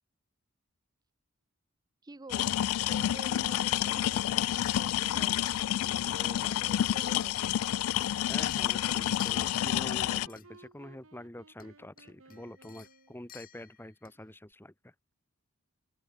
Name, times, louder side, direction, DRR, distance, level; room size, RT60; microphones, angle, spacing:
voice 1, 2.0-2.6 2.9-5.5 6.1-7.4, right 2 dB, 20° right, 0.6 m, -49 dB
sound 1, 2.3-10.3, left 12 dB, 80° left, 0.3 m, -29 dB
sound 2, 4.0-13.2, right 3 dB, 70° right, 2.3 m, -55 dB
sound 3, 4.4-6.2 6.5-9.7 10.1-10.6 11.5-11.7 12.0-14.3 14.5-14.6, left 10 dB, 45° left, 2.3 m, -54 dB
voice 2, 8.3-14.9, left 1 dB, 10° left, 1.3 m, -46 dB
open air
head